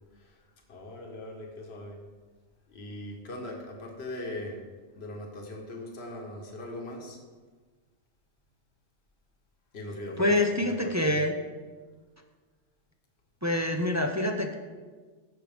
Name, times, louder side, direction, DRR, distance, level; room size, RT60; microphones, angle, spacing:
voice 1, 0.1-2.0 2.7-4.6 5.0-7.2 9.7-11.2, left 1 dB, 65° left, 1 dB, 1.6 m, -40 dB
voice 2, 10.2-11.3 13.4-14.5, left 1 dB, 20° right, 3 dB, 0.6 m, -26 dB
16.0 x 6.4 x 3.5 m, 1.4 s
omnidirectional pair, 1.2 m